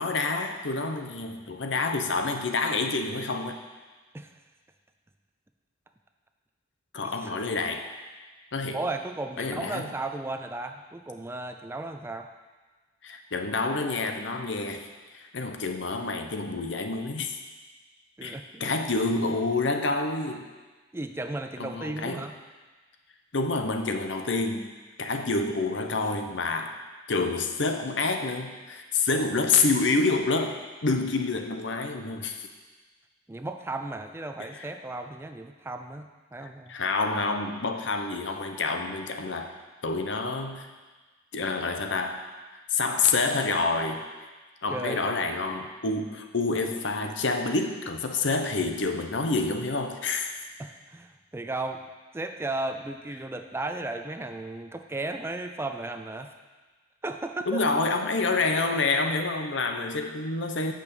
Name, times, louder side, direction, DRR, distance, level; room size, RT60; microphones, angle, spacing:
voice 1, 0.0-3.6 6.9-7.9 8.5-8.8 9.4-9.9 13.0-17.4 18.2-20.5 21.6-22.2 23.3-24.7 25.0-26.7 27.1-32.5 34.6-34.7 36.7-39.5 39.8-40.7 41.3-42.2 42.7-44.1 44.6-50.3 57.5-60.7, left 3 dB, 65° left, 5 dB, 0.9 m, -28 dB
voice 2, 8.7-12.3 18.2-18.8 20.9-22.4 33.3-36.7 44.7-45.2 50.6-51.8 52.1-56.3 57.0-57.6, right 2 dB, 15° right, 6 dB, 0.4 m, -35 dB
8.5 x 6.2 x 6.9 m, 1.3 s
head